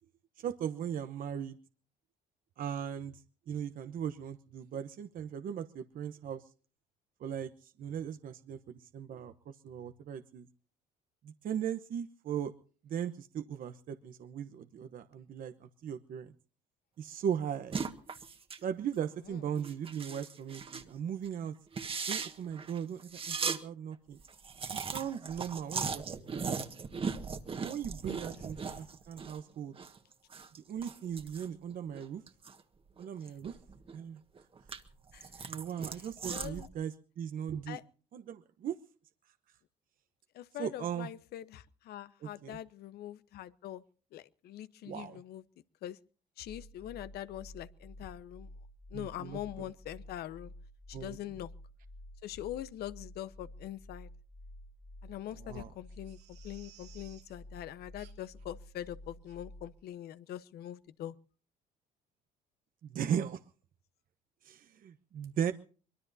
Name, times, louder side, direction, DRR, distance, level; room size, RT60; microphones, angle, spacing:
voice 1, 0.4-1.6 2.6-6.5 7.2-10.5 11.2-12.5 12.8-16.3 17.0-17.8 18.6-21.5 22.1-24.2 24.8-26.8 27.6-29.8 30.7-32.2 33.0-33.6 33.9-34.2 35.5-37.8 38.1-38.8 40.6-41.1 42.2-42.6 44.9-45.2 48.9-49.7 50.9-51.2 55.4-55.7 62.8-63.4 64.4-65.5, right 8 dB, 55° right, 10 dB, 1.0 m, -38 dB
sound 1, 17.7-18.6 18.9-19.1 19.6-20.9 21.2-21.3 21.7-23.6 23.9-24.0 24.2-29.4 29.7-32.6 33.0-34.0 34.4-36.7, right 5 dB, 35° right, 1.6 m, -38 dB
voice 2, 28.1-28.7 35.1-35.5 36.3-36.7 37.7-37.8 40.3-43.8 44.1-45.4 45.8-46.0 46.4-48.5 48.9-50.5 50.9-51.5 52.2-54.1 55.0-56.2 56.4-61.1, left 12 dB, 70° left, 14 dB, 1.0 m, -43 dB
sound 2, 46.5-59.8, left 1 dB, 5° left, 1.6 m, -51 dB
Crying sobbing, 55.9-57.4 58.0-58.4 58.8-58.9 59.3-59.4 59.9-60.0 60.3-60.4, right 11 dB, 80° right, 3.2 m, -60 dB
24.0 x 22.0 x 2.7 m, 0.41 s
cardioid pair, 110°, 17 cm